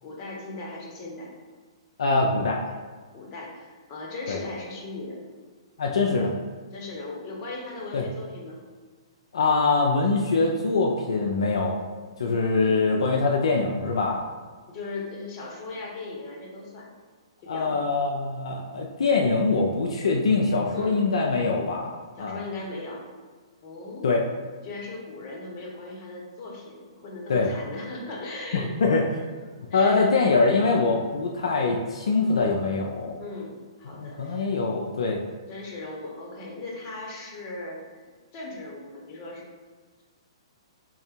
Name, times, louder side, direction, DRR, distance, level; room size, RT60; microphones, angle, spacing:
voice 1, 0.0-1.3 3.1-5.2 6.7-8.6 12.2-12.5 14.7-16.9 17.4-17.8 20.7-21.0 22.2-23.0 23.6-24.1 24.6-28.7 29.7-30.1 33.2-34.4 35.5-37.8 38.3-39.4, left 2 dB, 35° left, -3 dB, 1.1 m, -38 dB
voice 2, 2.0-2.6 4.3-4.4 5.8-6.3 7.9-8.0 9.3-11.8 12.2-14.2 17.5-22.4 24.0-24.2 27.3-27.5 28.5-29.2 29.7-33.2 33.9-35.2, left 3 dB, 80° left, 0 dB, 0.4 m, -23 dB
3.6 x 2.3 x 4.3 m, 1.5 s
hypercardioid pair, 135°, 3 cm